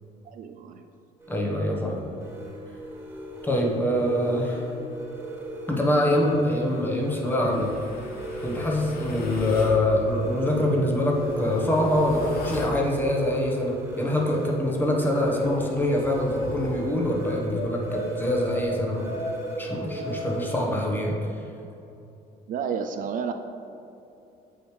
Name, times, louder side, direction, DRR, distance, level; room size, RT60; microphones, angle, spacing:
voice 1, 0.2-0.9 9.3-9.4 22.5-23.3, right 7 dB, 55° right, 6 dB, 0.4 m, -31 dB
sound 1, 1.2-20.9, right 1 dB, 15° right, 1.3 m, -36 dB
voice 2, 1.3-2.0 3.4-4.7 5.7-7.7 8.4-19.1 19.6-21.4, left 1 dB, 10° left, -1 dB, 1.1 m, -25 dB
sound 2, 7.4-9.8 10.8-12.8 14.5-16.8 17.5-20.9, left 2 dB, 60° left, 1.0 m, -39 dB
7.8 x 5.0 x 3.3 m, 2.8 s
cardioid pair, 110°, 17 cm